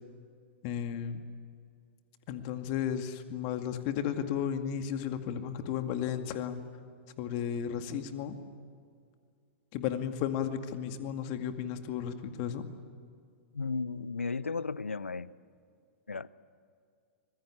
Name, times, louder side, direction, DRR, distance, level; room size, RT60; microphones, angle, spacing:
voice 1, 0.6-1.2 2.3-6.6 7.2-8.4 9.7-12.7, left 9 dB, 40° left, 7 dB, 2.2 m, -34 dB
voice 2, 13.5-15.3 16.1-16.3, left 4 dB, 85° left, 20 dB, 0.7 m, -34 dB
25.0 x 21.0 x 8.8 m, 2.3 s
figure-of-eight pair, 110°, 7 cm